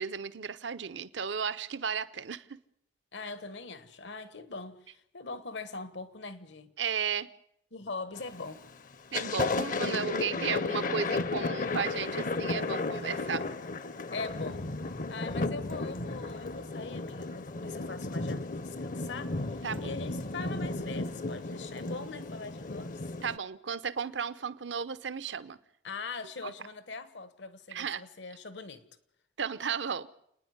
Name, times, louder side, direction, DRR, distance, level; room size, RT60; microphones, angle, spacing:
voice 1, 0.0-2.4 6.8-7.3 9.1-13.4 19.6-19.9 23.2-25.6 26.4-26.5 27.7-28.0 29.4-30.1, right 6 dB, 85° right, 0.8 m, -34 dB
voice 2, 3.1-6.7 7.7-8.6 14.1-14.7 15.1-23.0 25.8-28.8, left 4 dB, 75° left, 1.3 m, -42 dB
Thunder, 8.2-8.6 8.9-23.4, left 3 dB, 45° left, 0.7 m, -34 dB
30.0 x 10.0 x 9.6 m
head